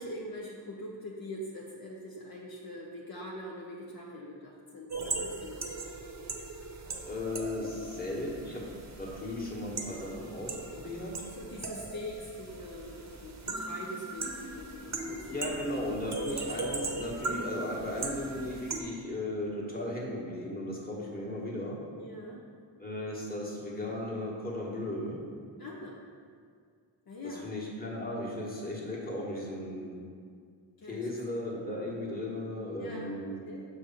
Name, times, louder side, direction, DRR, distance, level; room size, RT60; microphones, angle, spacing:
voice 1, 0.0-5.7 7.8-7.9 11.4-15.5 22.0-22.4 25.6-26.0 27.1-27.5 30.8-31.1 32.8-33.7, left 1 dB, 55° left, -2 dB, 0.7 m, -43 dB
sound 1, 4.9-18.8, right 3 dB, 40° right, 0.8 m, -39 dB
voice 2, 7.0-8.7 9.0-11.2 15.3-21.8 22.8-25.2 27.2-30.0 30.9-33.5, left 1 dB, 20° left, -4 dB, 1.5 m, -36 dB
6.4 x 3.3 x 5.7 m, 2.1 s
cardioid pair, 70°, 43 cm